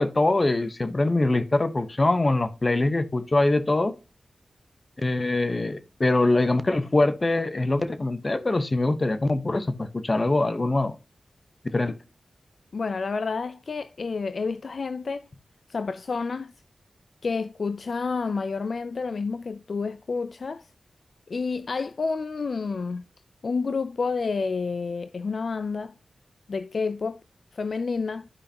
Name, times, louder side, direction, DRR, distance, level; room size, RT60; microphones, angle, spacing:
voice 1, 0.0-3.9 5.0-11.0 11.7-11.9, left 2 dB, 40° left, 1.0 m, -23 dB
voice 2, 12.7-15.3 15.7-16.5 17.2-20.7 21.3-23.0 23.4-25.9 26.5-27.2 27.5-28.3, left 4 dB, 70° left, 0.3 m, -29 dB
12.5 x 5.0 x 2.8 m
cardioid pair, 55°, 0 cm